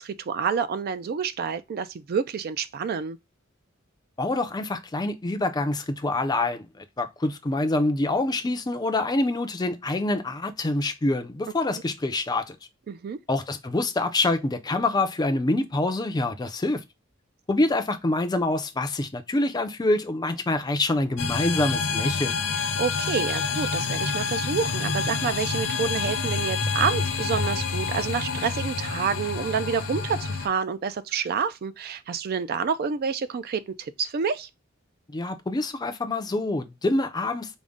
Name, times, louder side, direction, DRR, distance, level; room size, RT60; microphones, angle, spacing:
voice 1, 0.0-3.2 12.9-13.2 22.8-34.5, right 6 dB, 50° right, 0.3 m, -28 dB
voice 2, 4.2-12.6 13.3-16.8 17.5-22.4 35.1-37.6, left 2 dB, 20° left, 0.4 m, -26 dB
sound 1, 21.2-30.5, left 4 dB, 65° left, 0.7 m, -28 dB
5.1 x 2.1 x 3.4 m
head